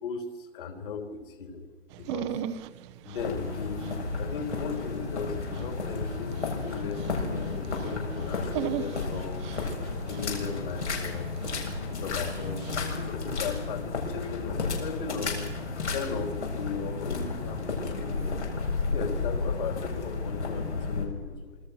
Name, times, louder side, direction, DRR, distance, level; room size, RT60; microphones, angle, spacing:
voice 1, 0.0-1.7 2.0-2.4 3.0-9.5 10.0-11.4 11.8-15.4 15.8-18.4 18.9-21.6, left 5 dB, 50° left, 6 dB, 3.7 m, -37 dB
Dog, 1.9-12.8, right 11 dB, 25° right, 0.9 m, -40 dB
sound 1, 3.2-21.0, left 4 dB, 85° left, 7.7 m, -32 dB
27.0 x 24.0 x 6.5 m, 1.5 s
hypercardioid pair, 135°, 33 cm